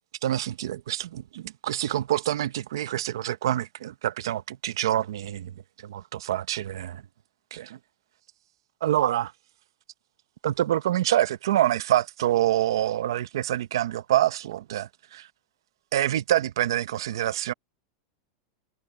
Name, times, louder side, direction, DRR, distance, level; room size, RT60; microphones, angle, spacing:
voice 1, 0.2-5.5 5.8-7.0 7.5-7.8 8.8-9.3 10.4-15.3 15.9-17.5, right 13 dB, 85° right, 0.8 m, -26 dB
supercardioid pair, 170°, 2 cm